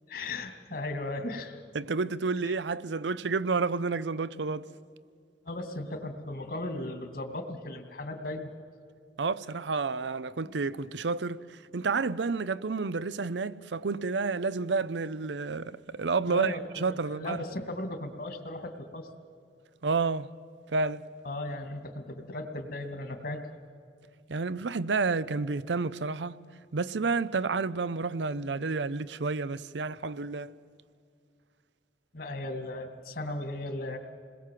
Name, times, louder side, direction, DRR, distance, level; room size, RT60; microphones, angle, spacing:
voice 1, 0.1-1.6 2.4-2.6 5.4-8.5 10.4-10.5 16.3-19.1 21.2-23.4 32.1-34.0, left 2 dB, 60° left, 2.5 m, -36 dB
voice 2, 1.7-4.7 9.2-17.4 19.8-20.3 20.7-21.0 24.3-26.4 26.7-30.5, right 4 dB, 85° right, 0.6 m, -30 dB
28.0 x 21.0 x 7.6 m
head